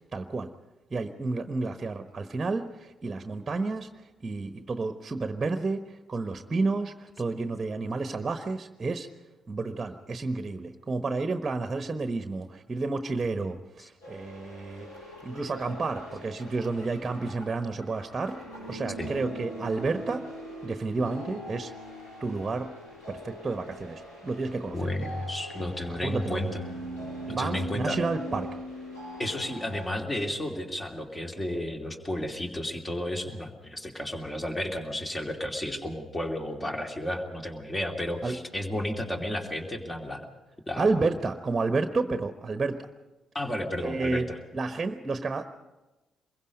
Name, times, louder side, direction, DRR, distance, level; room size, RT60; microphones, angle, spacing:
voice 1, 0.1-0.5 0.9-9.1 9.5-14.9 15.2-18.4 18.7-20.2 20.6-21.7 22.2-22.7 23.1-24.8 26.0-26.4 27.3-28.5 38.2-38.4 40.8-42.9 43.8-44.3 44.5-45.5, right 3 dB, 30° right, 8 dB, 1.2 m, -30 dB
sound 1, 14.0-29.9, right 1 dB, 80° left, 7.1 m, -41 dB
voice 2, 24.7-26.5 27.3-28.0 29.2-40.2 40.7-40.9 43.3-44.4, left 1 dB, 20° left, 3 dB, 2.9 m, -32 dB
25.0 x 22.0 x 5.3 m, 1.1 s
figure-of-eight pair, 40°, 0 cm